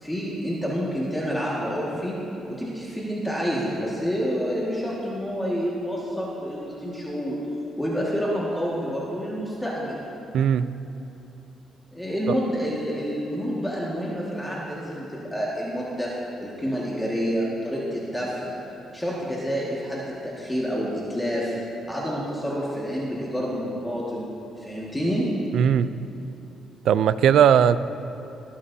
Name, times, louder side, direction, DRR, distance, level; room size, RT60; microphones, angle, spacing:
voice 1, 0.0-2.2 2.5-7.4 7.8-10.0 11.9-16.1 16.4-18.6 18.9-21.5 21.9-24.3 24.6-25.3, equal, 5° left, -6 dB, 1.8 m, -28 dB
voice 2, 10.3-10.7 12.3-12.4 25.5-25.9 26.9-27.8, right 8 dB, 75° right, 14 dB, 0.4 m, -18 dB
22.0 x 8.5 x 2.7 m, 2.9 s
cardioid pair, 90°, 0 cm